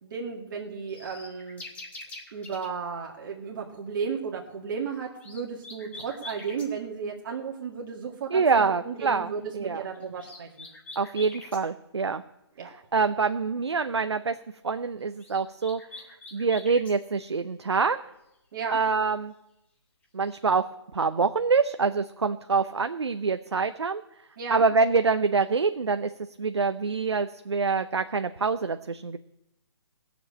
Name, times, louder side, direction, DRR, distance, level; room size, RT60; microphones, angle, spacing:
voice 1, 0.0-1.6 2.3-10.5 12.6-12.7 18.5-18.8 24.4-24.6, right 6 dB, 50° right, -1 dB, 1.9 m, -34 dB
sound 1, 0.9-2.7 5.0-6.7 10.0-11.6 15.0-17.0 20.0-20.6, left 2 dB, 10° left, 1.6 m, -44 dB
voice 2, 8.3-9.9 11.0-12.2 12.6-14.3 14.6-15.8 16.3-18.0 18.7-19.3 20.1-20.6 20.9-24.0 24.5-26.1 26.4-29.2, right 4 dB, 75° right, 10 dB, 0.6 m, -25 dB
17.5 x 7.1 x 8.5 m, 0.88 s
figure-of-eight pair, 140°, 14 cm